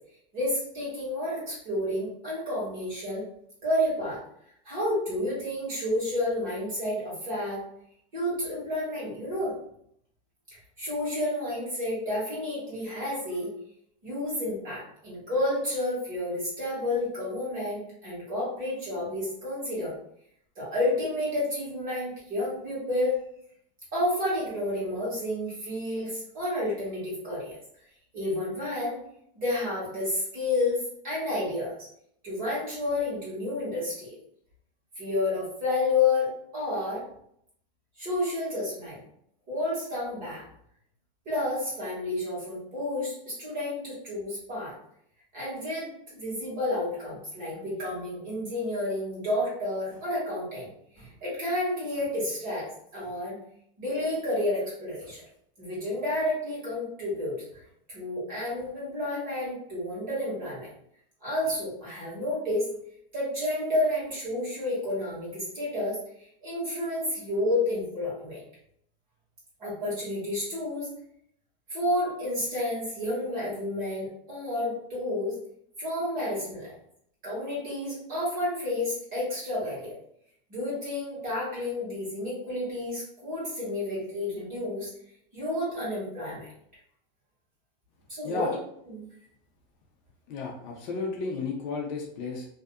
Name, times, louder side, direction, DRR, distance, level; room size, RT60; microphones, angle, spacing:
voice 1, 0.3-3.2 3.6-4.2 4.6-7.6 8.1-9.5 10.8-13.5 14.0-19.9 20.5-23.1 23.9-27.6 28.1-29.0 29.3-31.9 32.2-34.1 34.9-37.0 38.0-39.0 39.5-40.4 41.2-44.7 45.3-50.7 50.9-53.4 53.8-55.2 55.6-57.6 57.9-60.7 61.2-62.7 63.1-66.0 66.4-68.4 69.6-70.9 71.7-75.4 75.8-76.7 77.2-80.0 80.5-84.9 85.3-86.5 88.1-88.5 88.9-89.1, left 1 dB, 30° right, -7 dB, 1.5 m, -30 dB
voice 2, 90.3-92.5, left 4 dB, 50° left, -1 dB, 0.5 m, -33 dB
2.7 x 2.4 x 2.3 m, 0.69 s
supercardioid pair, 175°, 29 cm